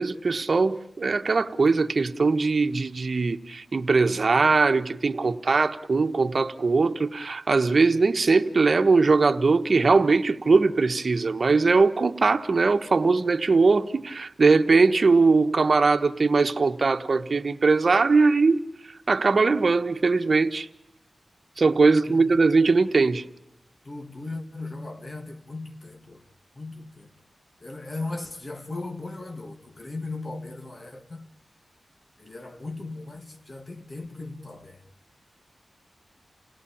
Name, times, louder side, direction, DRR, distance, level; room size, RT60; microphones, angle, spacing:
voice 1, 0.0-18.6 19.1-20.7 21.6-23.2, right 4 dB, 60° right, 1.2 m, -21 dB
voice 2, 22.1-22.4 23.8-26.2 26.6-27.1 27.6-31.3 32.2-34.8, left 2 dB, 45° left, 2.4 m, -37 dB
29.0 x 17.5 x 8.6 m
cardioid pair, 60°, 0 cm